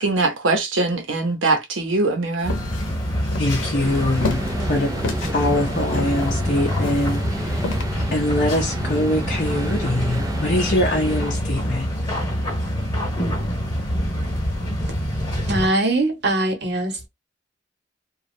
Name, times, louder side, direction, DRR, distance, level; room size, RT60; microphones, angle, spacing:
voice 1, 0.0-2.6, right 3 dB, 80° right, 0.8 m, -22 dB
sound 1, 2.4-7.8, left 3 dB, 85° left, 0.8 m, -31 dB
sound 2, 2.4-15.7, equal, 25° left, 1.1 m, -26 dB
voice 2, 3.4-4.4 4.7-4.9 5.2-7.7 8.1-11.9, left 1 dB, 45° left, 0.6 m, -23 dB
sound 3, 3.8-11.3, right 1 dB, 20° right, 0.5 m, -32 dB
voice 3, 15.4-17.1, right 2 dB, 60° right, 1.0 m, -22 dB
3.0 x 2.3 x 2.6 m
head